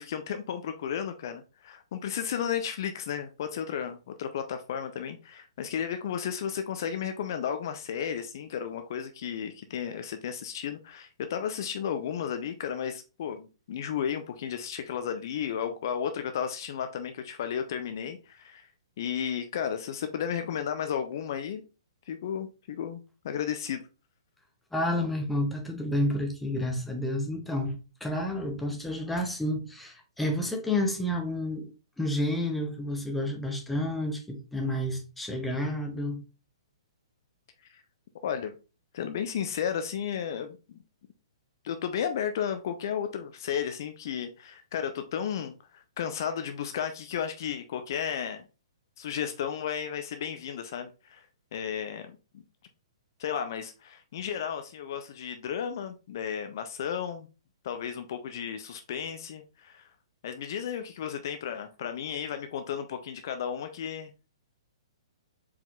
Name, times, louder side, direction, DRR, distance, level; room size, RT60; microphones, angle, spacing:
voice 1, 0.0-18.7 19.0-21.6 22.1-23.8 37.7-37.8 38.2-38.6 38.9-40.8 41.6-48.4 49.0-51.3 51.5-52.4 53.2-57.3 57.6-59.9 60.2-64.1, left 8 dB, 45° left, 0.4 m, -33 dB
voice 2, 24.7-31.7 32.0-36.2, left 1 dB, 5° left, 0.7 m, -30 dB
4.5 x 3.6 x 2.3 m
figure-of-eight pair, 120°, 3 cm